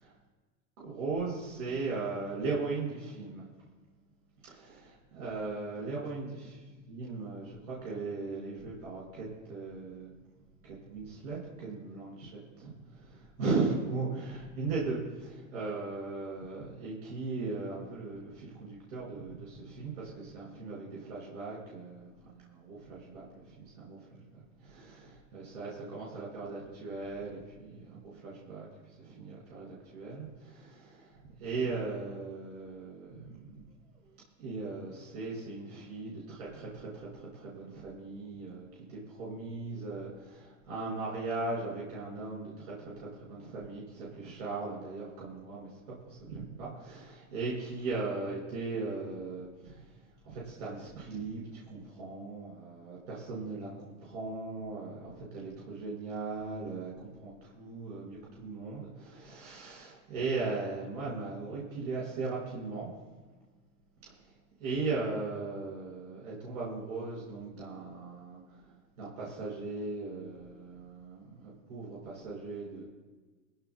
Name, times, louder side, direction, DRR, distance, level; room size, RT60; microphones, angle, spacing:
voice 1, 0.8-3.5 4.5-6.5 6.9-10.1 10.6-12.3 12.6-28.7 29.0-33.6 34.4-45.7 46.0-49.9 50.2-62.9 64.2-64.3 64.6-68.7 69.0-72.8, right 3 dB, 85° right, -5 dB, 5.4 m, -38 dB
22.5 x 16.0 x 2.2 m, 1.3 s
supercardioid pair, 110°, 42 cm